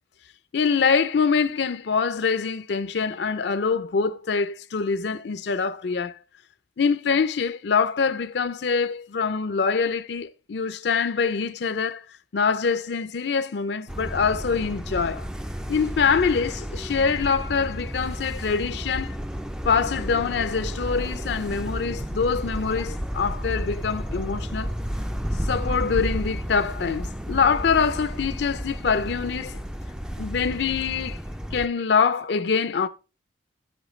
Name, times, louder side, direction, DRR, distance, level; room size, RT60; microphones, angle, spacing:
voice 1, 0.5-6.2 6.8-12.0 12.3-15.3 15.7-19.2 19.6-24.8 25.4-29.6 30.2-31.2 31.5-32.9, left 5 dB, 60° left, 0.4 m, -24 dB
sound 1, 13.9-31.7, equal, 5° right, 0.3 m, -32 dB
9.1 x 8.1 x 3.1 m
head